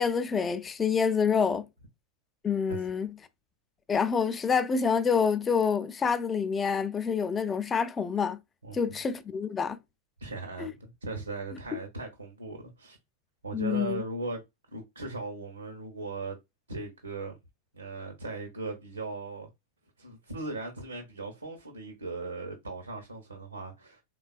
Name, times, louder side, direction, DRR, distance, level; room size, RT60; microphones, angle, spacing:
voice 1, 0.0-1.7 2.4-3.1 3.9-8.4 8.7-9.8 10.6-10.7 13.5-14.0, left 6 dB, 20° left, 0.4 m, -27 dB
voice 2, 10.2-13.0 13.4-14.4 14.7-16.4 16.7-17.4 17.7-19.5 20.0-24.0, right 2 dB, 80° right, 0.8 m, -38 dB
3.4 x 2.2 x 2.3 m
figure-of-eight pair, 90°, 0 cm